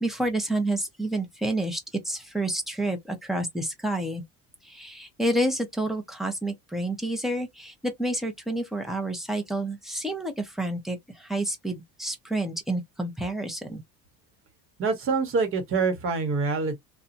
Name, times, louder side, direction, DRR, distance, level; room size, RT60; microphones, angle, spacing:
voice 1, 0.0-1.8 2.0-4.2 4.6-13.8, right 1 dB, ahead, 0.8 m, -29 dB
voice 2, 14.8-16.8, right 4 dB, 40° right, 1.2 m, -25 dB
2.7 x 2.3 x 2.6 m
cardioid pair, 135°, 34 cm